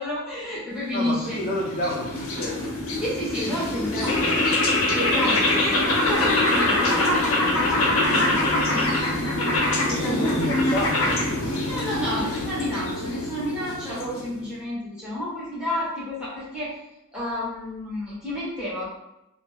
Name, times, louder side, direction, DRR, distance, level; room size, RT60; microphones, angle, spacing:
voice 1, 0.0-1.4 3.0-4.4 4.9-8.9 9.8-10.3 11.7-16.8 17.1-18.9, left 1 dB, 5° right, -9 dB, 0.9 m, -31 dB
voice 2, 0.9-2.8 8.6-9.5 9.9-12.1, equal, 40° left, -6 dB, 0.7 m, -31 dB
sound 1, 1.0-14.4, left 2 dB, 85° left, 0.6 m, -24 dB
2.4 x 2.0 x 3.1 m, 0.90 s
head